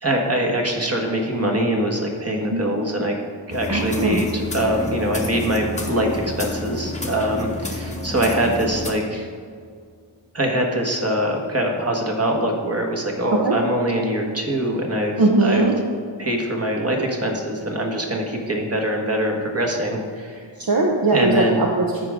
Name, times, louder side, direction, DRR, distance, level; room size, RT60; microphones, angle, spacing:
voice 1, 0.0-3.2 3.5-9.3 10.3-15.7 16.2-20.5 21.1-21.6, right 1 dB, 30° right, 1 dB, 1.6 m, -23 dB
sound 1, 3.5-8.9, left 1 dB, 15° left, 1.1 m, -30 dB
voice 2, 3.7-4.2 13.3-13.6 15.2-15.7 20.6-22.1, right 2 dB, 50° right, -1 dB, 1.0 m, -20 dB
13.5 x 5.1 x 3.7 m, 2.1 s
cardioid pair, 60°, 46 cm